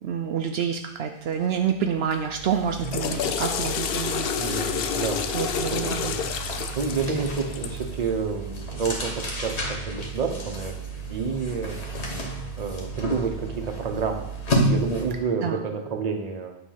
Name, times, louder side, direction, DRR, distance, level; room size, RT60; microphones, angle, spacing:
voice 1, 0.0-5.0 5.3-6.1 15.4-15.6, right 8 dB, 70° right, 5 dB, 0.8 m, -28 dB
sound 1, 1.3-1.5 1.8-15.3, right 1 dB, 90° left, 1.6 m, -32 dB
Water / Toilet flush, 2.6-7.9, left 7 dB, 65° left, 0.7 m, -29 dB
voice 2, 4.4-5.2 5.5-6.3 6.7-9.1 9.4-11.8 12.6-16.6, right 5 dB, 40° right, 3 dB, 0.9 m, -29 dB
8.9 x 3.2 x 5.6 m, 0.90 s
omnidirectional pair, 1.1 m